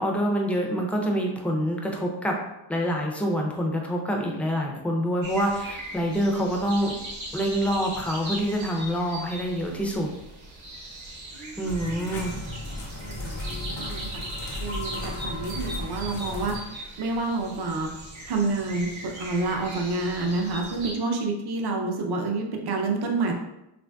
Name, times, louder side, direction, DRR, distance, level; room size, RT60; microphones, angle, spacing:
voice 1, 0.0-2.4 2.7-6.9 7.3-10.1 11.6-12.4, equal, 5° left, 0 dB, 0.3 m, -26 dB
sound 1, 5.2-20.9, right 1 dB, 75° right, 0.9 m, -40 dB
voice 2, 11.3-12.1 12.9-14.1 14.6-16.6 17.0-17.9 18.3-23.3, right 3 dB, 55° right, 1 dB, 0.6 m, -29 dB
sound 2, 11.7-16.6, left 2 dB, 90° left, 0.8 m, -35 dB
3.2 x 2.5 x 2.2 m, 0.88 s
wide cardioid pair, 105°, 48 cm